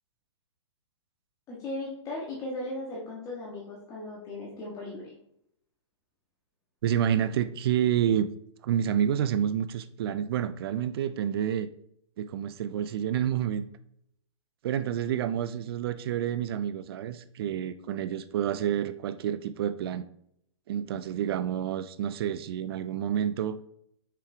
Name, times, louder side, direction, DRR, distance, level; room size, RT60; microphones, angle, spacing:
voice 1, 1.5-5.1, left 2 dB, 25° left, -4 dB, 1.5 m, -37 dB
voice 2, 6.8-8.3 8.6-11.7 12.2-13.7 14.6-20.0 20.7-23.6, right 9 dB, 55° right, 12 dB, 0.5 m, -29 dB
5.8 x 4.8 x 3.5 m, 0.71 s
hypercardioid pair, 140°, 16 cm